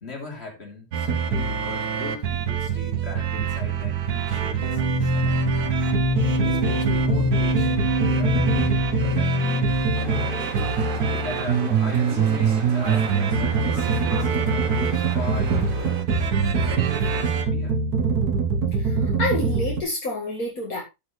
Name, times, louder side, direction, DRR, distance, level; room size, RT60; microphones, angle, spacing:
voice 1, 0.0-5.5 6.4-9.8 11.1-16.1 16.6-17.8, left 3 dB, 40° left, 3.4 m, -39 dB
sound 1, 0.9-19.8, right 5 dB, 85° right, 1.6 m, -24 dB
sound 2, 4.6-10.3, left 1 dB, 15° left, 2.6 m, -25 dB
sound 3, 9.9-16.0, right 4 dB, 35° right, 1.6 m, -35 dB
voice 2, 18.8-20.8, left 2 dB, 65° left, 2.4 m, -28 dB
12.5 x 6.2 x 3.2 m
omnidirectional pair, 1.6 m